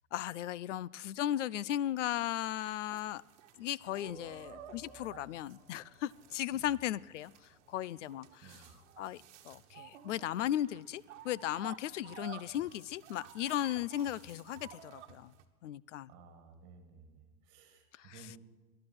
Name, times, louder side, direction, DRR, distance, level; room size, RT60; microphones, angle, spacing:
voice 1, 0.1-3.2 3.6-7.3 7.7-8.6 9.0-15.3 15.6-16.1 18.0-18.3, left 12 dB, 60° left, 23 dB, 0.5 m, -36 dB
sound 1, 2.7-15.4, right 9 dB, 55° right, 1.4 m, -53 dB
sound 2, 4.1-9.4, left 3 dB, 15° left, 5.1 m, -63 dB
voice 2, 8.4-8.7 16.1-18.4, right 4 dB, 25° right, 6 dB, 2.1 m, -56 dB
19.0 x 12.0 x 6.1 m, 1.3 s
supercardioid pair, 165°, 43 cm